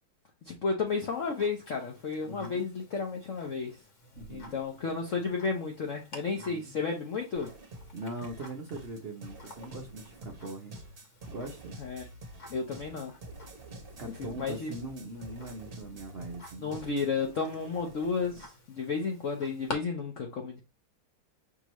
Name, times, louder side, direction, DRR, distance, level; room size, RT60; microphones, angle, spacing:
voice 1, 0.4-3.8 4.3-7.5 11.8-12.1 12.5-13.1 14.4-14.7 16.6-20.6, left 4 dB, 65° left, 0.8 m, -32 dB
Tick-tock, 0.9-19.8, left 2 dB, 45° left, 1.2 m, -50 dB
voice 2, 2.2-2.7 4.2-4.6 6.4-6.7 7.9-10.8 11.3-11.8 14.0-16.9, right 2 dB, 80° right, 0.5 m, -41 dB
sound 1, 7.3-18.5, right 2 dB, 40° right, 0.9 m, -48 dB
6.0 x 2.9 x 3.0 m
omnidirectional pair, 2.3 m